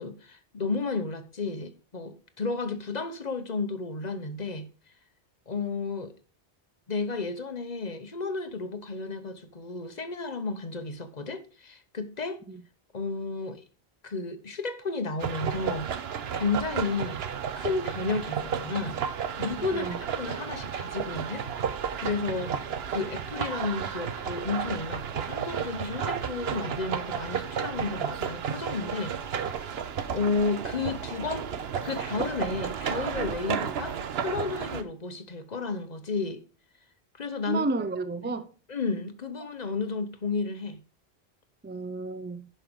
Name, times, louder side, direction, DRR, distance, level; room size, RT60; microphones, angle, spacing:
voice 1, 0.0-4.7 5.5-6.1 6.9-12.4 12.9-13.6 14.0-15.9 16.3-17.2 17.6-19.0 19.4-21.5 22.0-22.6 22.9-29.1 30.1-31.5 31.8-36.4 37.1-37.7 38.2-38.3 38.7-40.8, left 4 dB, 40° left, 1.1 m, -32 dB
sound 1, 15.2-34.8, right 7 dB, 70° right, 1.0 m, -32 dB
voice 2, 19.6-20.0 37.5-38.5 41.6-42.5, right 3 dB, 15° right, 0.4 m, -32 dB
11.0 x 5.7 x 5.2 m
omnidirectional pair, 1.1 m